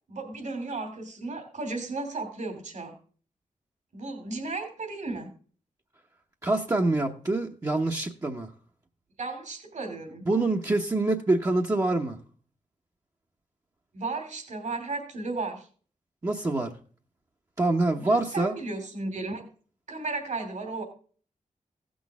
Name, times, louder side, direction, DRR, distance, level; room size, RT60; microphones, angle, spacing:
voice 1, 0.1-3.0 3.9-5.3 9.2-10.2 13.9-15.7 17.9-19.5 19.9-20.8, right 3 dB, 70° right, 2.7 m, -34 dB
voice 2, 6.4-8.5 10.3-12.2 16.2-16.7 17.6-18.5, right 2 dB, 25° right, 0.9 m, -25 dB
16.0 x 6.3 x 3.5 m
wide cardioid pair, 115°, 13 cm